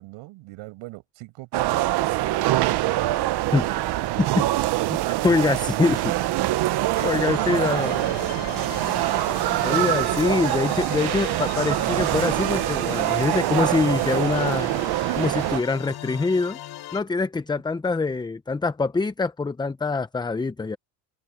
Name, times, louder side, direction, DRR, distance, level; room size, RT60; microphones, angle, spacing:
voice 1, 0.0-3.1 4.1-5.3 5.6-8.4, right 21 dB, 70° right, 6.5 m, -38 dB
sound 1, 1.5-15.6, right 16 dB, 55° right, 1.1 m, -24 dB
voice 2, 5.2-6.0 7.0-8.0 9.6-14.7 15.2-16.6 16.9-20.8, left 3 dB, 10° left, 0.7 m, -24 dB
sound 2, 6.9-17.0, left 13 dB, 55° left, 7.7 m, -38 dB
supercardioid pair, 105°, 46 cm